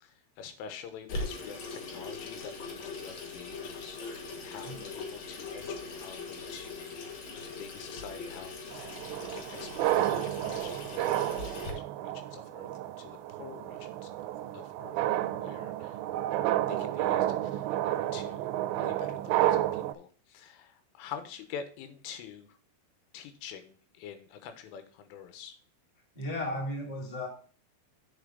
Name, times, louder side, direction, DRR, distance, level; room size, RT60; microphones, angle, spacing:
voice 1, 0.0-7.1 7.4-10.0 10.4-12.7 13.0-14.1 14.5-15.0 15.4-16.0 16.7-17.7 18.1-22.6 23.1-25.6, left 8 dB, 90° left, 8 dB, 3.7 m, -46 dB
Water tap faucet / Sink (filling or washing), 1.1-11.7, left 3 dB, 65° left, 1.8 m, -41 dB
sound 1, 8.7-19.9, right 13 dB, 85° right, 2.5 m, -31 dB
voice 2, 26.1-27.3, left 1 dB, 15° left, -2 dB, 1.5 m, -35 dB
8.2 x 6.2 x 3.9 m, 0.42 s
omnidirectional pair, 5.5 m